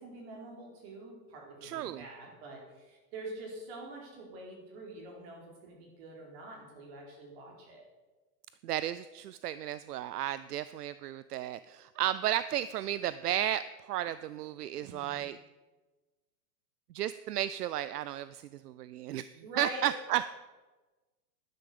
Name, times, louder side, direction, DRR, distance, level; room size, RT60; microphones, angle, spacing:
voice 1, 0.0-7.9 14.8-15.2 19.4-19.9, right 2 dB, 40° right, 0 dB, 4.2 m, -45 dB
voice 2, 1.6-2.0 8.6-13.6 13.9-15.4 16.9-19.3 19.6-20.2, right 12 dB, 70° right, 15 dB, 0.6 m, -33 dB
12.0 x 9.6 x 6.8 m, 1.2 s
supercardioid pair, 170°, 48 cm